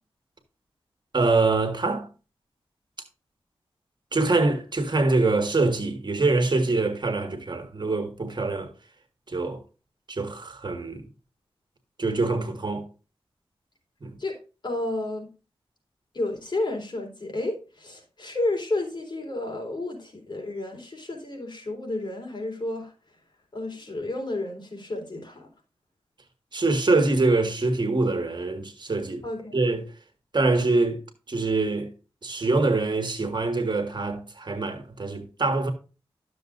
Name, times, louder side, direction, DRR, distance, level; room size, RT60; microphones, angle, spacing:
voice 1, 1.1-2.1 4.1-8.7 9.3-9.6 10.1-11.0 12.0-12.9 14.0-14.1 26.5-29.2 29.5-29.8 30.3-31.0 31.3-31.9 32.2-35.7, right 3 dB, 50° right, 1.7 m, -24 dB
voice 2, 14.6-15.3 16.1-22.9 23.5-25.5 29.2-29.5, left 2 dB, 50° left, 3.7 m, -31 dB
12.5 x 7.0 x 2.6 m
wide cardioid pair, 65°, 10 cm